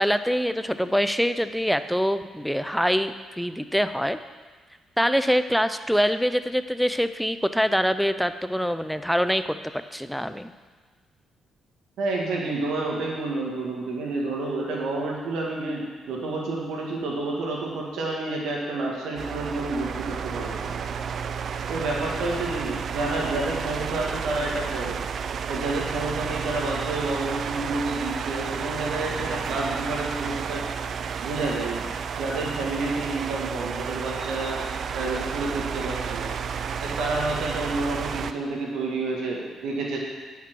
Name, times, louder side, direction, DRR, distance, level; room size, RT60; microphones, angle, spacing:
voice 1, 0.0-4.2 5.0-10.5, equal, ahead, 11 dB, 0.5 m, -24 dB
voice 2, 12.0-20.7 21.7-25.0 25.5-30.6 31.2-31.9 32.2-34.6 34.9-36.3 36.8-40.0, right 2 dB, 85° right, -2 dB, 1.9 m, -29 dB
sound 1, 19.2-38.3, right 6 dB, 60° right, 0.5 m, -31 dB
9.6 x 5.8 x 6.2 m, 1.5 s
cardioid pair, 90°, 0 cm